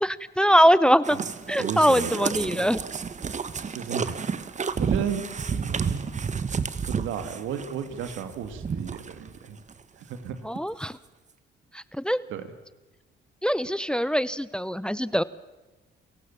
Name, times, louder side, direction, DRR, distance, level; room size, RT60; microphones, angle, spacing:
voice 1, 0.0-1.2 1.5-2.8 10.4-10.9 12.0-12.2 13.4-15.2, equal, 5° left, 17 dB, 0.7 m, -22 dB
sound 1, 1.0-9.4 9.7-9.8 10.3-10.4 10.6-10.7, right 6 dB, 35° right, 1.3 m, -31 dB
voice 2, 1.6-2.7 3.7-4.2 4.8-5.2 5.6-6.1 6.8-9.6 10.0-10.4 12.3-12.4, right 8 dB, 85° right, 9 dB, 2.4 m, -33 dB
29.5 x 17.0 x 7.3 m, 1.2 s
cardioid pair, 90°, 20 cm